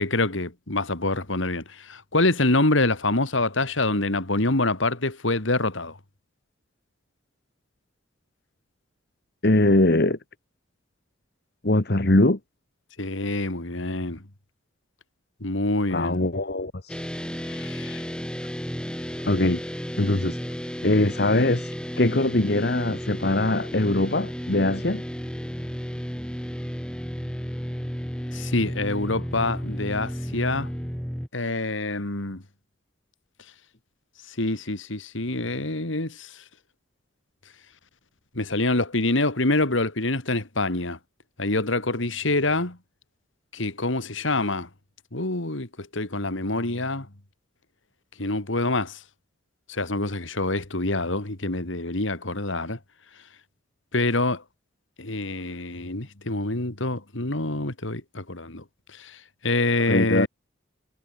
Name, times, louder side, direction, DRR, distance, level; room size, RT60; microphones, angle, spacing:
voice 1, 0.0-6.0 13.0-14.2 15.4-16.2 17.6-18.0 28.3-30.7 31.3-32.4 34.4-36.3 38.3-41.0 41.4-42.8 43.5-44.7 45.1-47.1 48.2-49.0 49.7-52.8 53.9-54.4 55.0-58.6 59.0-59.2 59.4-60.3, left 2 dB, 75° left, 2.7 m, -26 dB
voice 2, 9.4-10.2 11.6-12.4 15.9-16.9 17.4-18.0 19.2-19.6 20.0-20.4 20.8-21.7 22.0-25.0 59.9-60.3, left 2 dB, 50° left, 1.5 m, -22 dB
sound 1, 16.9-31.3, equal, 5° left, 4.3 m, -33 dB
head